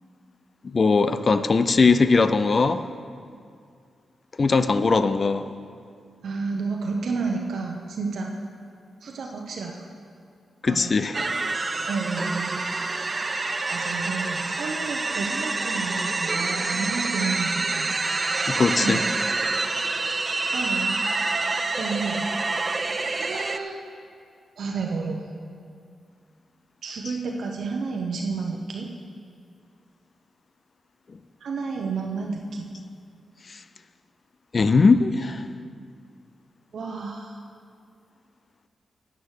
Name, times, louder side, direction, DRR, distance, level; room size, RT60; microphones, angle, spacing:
voice 1, 0.6-2.8 4.4-5.5 10.6-11.2 18.5-19.0 27.0-27.2 33.5-33.6 34.5-35.5, left 4 dB, 40° left, 11 dB, 0.4 m, -20 dB
voice 2, 6.2-8.4 9.0-9.8 10.7-10.9 11.9-12.7 13.7-18.0 18.8-19.1 20.5-21.0 21.8-22.3 22.7-23.8 24.6-25.3 26.8-28.9 31.4-32.7 36.7-37.4, right 4 dB, 70° right, 1 dB, 0.8 m, -31 dB
sound 1, 11.1-23.6, right 3 dB, 30° right, 0.5 m, -27 dB
9.4 x 9.0 x 6.5 m, 2.3 s
wide cardioid pair, 115°, 0 cm